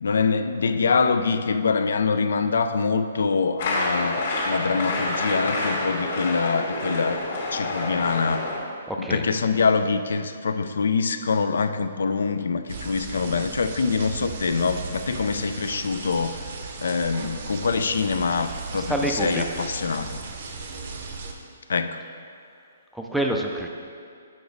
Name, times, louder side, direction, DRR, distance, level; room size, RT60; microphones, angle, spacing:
voice 1, 0.0-7.2 7.5-8.5 9.0-16.4 16.8-20.2 21.7-22.0, left 4 dB, 75° left, 9 dB, 0.4 m, -24 dB
sound 1, 3.6-8.6, left 2 dB, 45° left, 1.7 m, -28 dB
voice 2, 8.9-9.2 18.7-19.4 22.9-23.7, right 1 dB, ahead, 0 dB, 0.4 m, -27 dB
sound 2, 12.7-21.3, right 4 dB, 45° right, 0.7 m, -36 dB
6.9 x 6.0 x 3.9 m, 2.3 s
hypercardioid pair, 165°, 0 cm